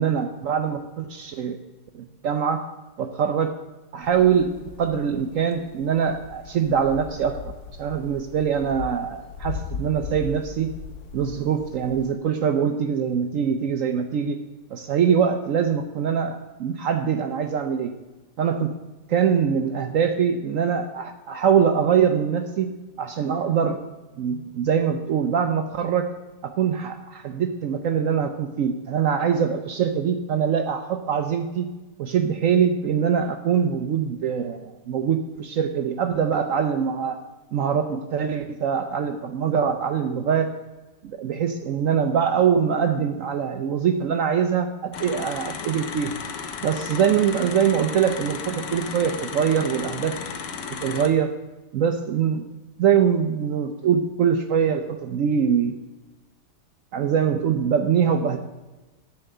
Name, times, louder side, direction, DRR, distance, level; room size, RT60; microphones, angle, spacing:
voice 1, 0.0-1.6 1.9-2.6 3.0-3.5 3.9-4.5 4.8-7.4 7.8-10.7 11.1-14.4 14.7-17.9 18.4-18.7 19.1-22.7 23.0-23.8 24.2-26.1 26.4-31.7 32.0-37.2 37.5-40.5 41.0-46.1 46.6-50.2 50.8-51.3 51.7-52.5 52.8-55.8 56.9-58.4, right 7 dB, 70° right, 7 dB, 0.8 m, -23 dB
sound 1, 4.0-12.1, left 6 dB, 70° left, 1.0 m, -38 dB
sound 2, 44.9-51.1, left 6 dB, 85° left, 1.5 m, -34 dB
11.0 x 4.5 x 6.6 m, 1.2 s
omnidirectional pair, 1.8 m